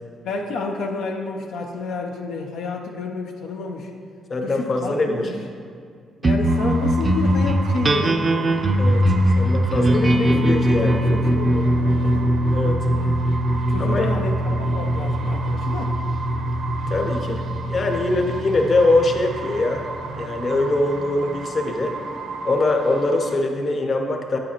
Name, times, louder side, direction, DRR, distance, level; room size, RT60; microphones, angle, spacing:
voice 1, 0.2-3.9 4.4-5.4 6.2-8.6 9.7-12.3 12.9-16.0, left 3 dB, 85° left, 1 dB, 0.5 m, -30 dB
voice 2, 4.3-5.3 8.8-10.0 10.3-11.0 12.5-12.8 13.8-14.1 16.9-17.4 17.7-19.8 20.1-21.9 22.4-24.4, left 2 dB, 40° left, 3 dB, 0.8 m, -22 dB
sound 1, 6.2-20.9, equal, 30° right, 0.4 m, -21 dB
sound 2, 6.5-23.4, right 4 dB, 65° right, 0.7 m, -35 dB
8.5 x 7.5 x 2.9 m, 2.1 s
cardioid pair, 90°, 0 cm